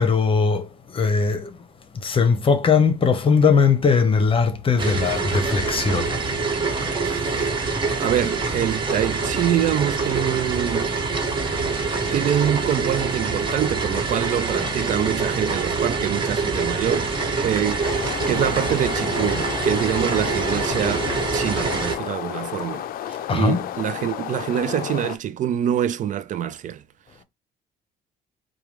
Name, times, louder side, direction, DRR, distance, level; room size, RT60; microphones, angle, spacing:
voice 1, 0.0-1.5 2.0-6.2 23.3-23.6, left 5 dB, 30° left, 0.9 m, -19 dB
sound 1, 4.8-22.0, right 4 dB, 30° right, 1.5 m, -25 dB
voice 2, 7.0-10.9 12.1-17.8 18.3-26.8, right 10 dB, 50° right, 0.4 m, -25 dB
sound 2, 17.8-25.2, left 11 dB, 60° left, 0.4 m, -32 dB
4.8 x 2.3 x 3.1 m
cardioid pair, 110°, 17 cm